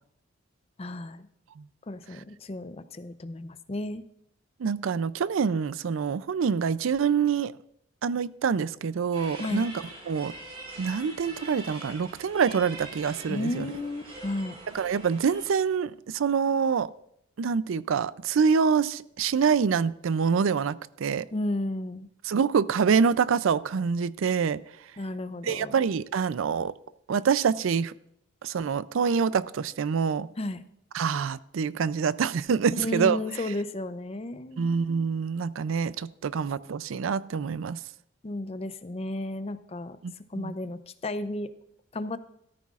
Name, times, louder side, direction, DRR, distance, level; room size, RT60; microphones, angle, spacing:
voice 1, 0.8-1.3 1.9-4.0 9.4-9.7 13.3-14.6 21.3-22.1 25.0-25.7 30.4-30.6 32.8-34.8 38.2-40.0 40.3-41.5 41.9-42.2, left 1 dB, 30° left, 0.5 m, -33 dB
voice 2, 4.6-7.5 8.0-9.7 10.1-10.3 10.8-13.7 14.7-16.9 17.4-21.3 22.2-24.6 25.4-26.7 27.1-27.9 28.4-30.3 30.9-33.2 34.6-37.8 40.0-40.5, right 6 dB, 75° right, 0.4 m, -26 dB
sound 1, 9.1-15.5, right 2 dB, 30° right, 3.9 m, -44 dB
14.0 x 13.5 x 2.4 m
head